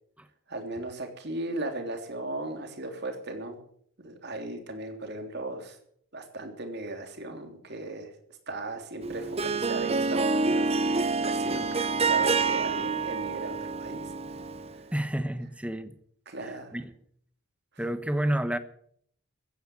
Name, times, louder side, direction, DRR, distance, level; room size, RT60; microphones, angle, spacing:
voice 1, 0.5-3.6 4.0-5.8 6.1-8.1 8.5-14.1 14.7-14.8 16.3-16.8, right 2 dB, 55° right, 5 dB, 3.3 m, -37 dB
Harp, 9.0-14.8, right 4 dB, 30° right, 0.9 m, -27 dB
voice 2, 14.9-15.9 16.4-16.9 17.8-18.6, right 1 dB, 5° right, 11 dB, 1.1 m, -30 dB
15.0 x 10.0 x 9.4 m, 0.65 s
head